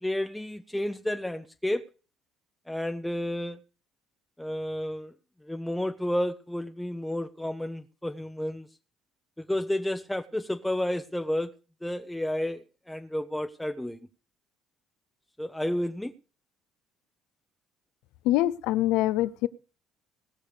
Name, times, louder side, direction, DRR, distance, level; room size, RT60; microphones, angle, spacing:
voice 1, 0.0-1.9 2.7-3.6 4.4-5.1 5.5-8.7 9.4-11.5 11.8-14.1 15.4-16.1, left 1 dB, 5° left, 0.7 m, -31 dB
voice 2, 18.2-19.5, left 15 dB, 85° left, 0.7 m, -24 dB
19.0 x 6.6 x 6.7 m
cardioid pair, 130°, 0 cm